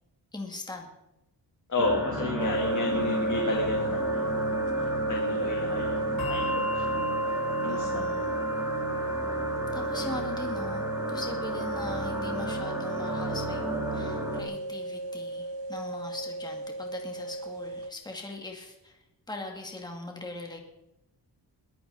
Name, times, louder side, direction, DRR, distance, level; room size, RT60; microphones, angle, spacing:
voice 1, 0.3-0.9 7.7-8.3 9.7-19.0 19.3-20.6, left 2 dB, 10° left, 1 dB, 2.2 m, -40 dB
voice 2, 1.7-4.5 5.1-7.0 7.6-8.1, left 3 dB, 45° left, -2 dB, 3.3 m, -32 dB
sound 1, 1.8-14.4, right 1 dB, 10° right, 2.4 m, -34 dB
sound 2, 2.4-17.9, right 2 dB, 90° right, 1.0 m, -32 dB
Bell, 6.2-13.1, left 1 dB, 60° left, 4.1 m, -38 dB
23.0 x 14.5 x 4.2 m, 0.92 s
wide cardioid pair, 170°, 41 cm